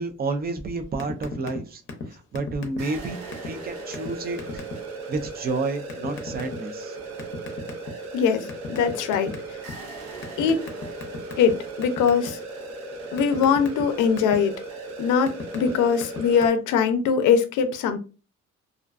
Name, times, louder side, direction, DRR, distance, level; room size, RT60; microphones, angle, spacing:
voice 1, 0.0-1.8 2.1-3.2 3.4-4.6 5.1-7.0, right 3 dB, 30° right, 0.4 m, -30 dB
sound 1, 1.0-1.6 1.9-2.1 2.4-3.0 3.3-3.5 3.9-4.1 4.4-4.7 5.9-6.6 7.2-8.1 8.5-9.7 10.2-11.5 11.8-12.3 12.7-14.4 15.0-15.7 16.0-16.4, left 5 dB, 40° left, 0.7 m, -35 dB
sound 2, 2.8-16.5, right 3 dB, 60° right, 0.8 m, -37 dB
voice 2, 8.1-9.3 10.4-10.6 11.4-12.4 13.1-14.5 15.0-18.0, left 6 dB, 85° left, 0.5 m, -22 dB
2.4 x 2.2 x 2.4 m
cardioid pair, 90°, 30 cm